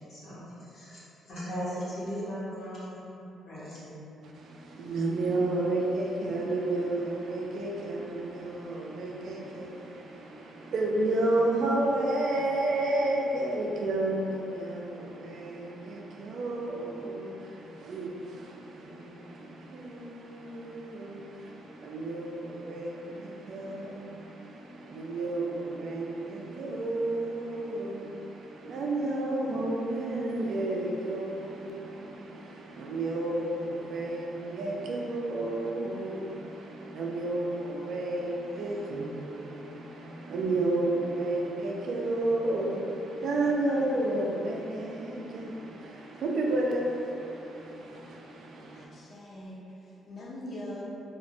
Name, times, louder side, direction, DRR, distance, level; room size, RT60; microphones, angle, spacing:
voice 1, 0.1-4.0, equal, 70° left, 1.0 m, -38 dB
voice 2, 4.2-48.9, right 2 dB, 65° right, 0.3 m, -31 dB
voice 3, 48.7-50.8, left 1 dB, 50° left, 0.6 m, -42 dB
2.4 x 2.0 x 2.7 m
cardioid pair, 90°, 0 cm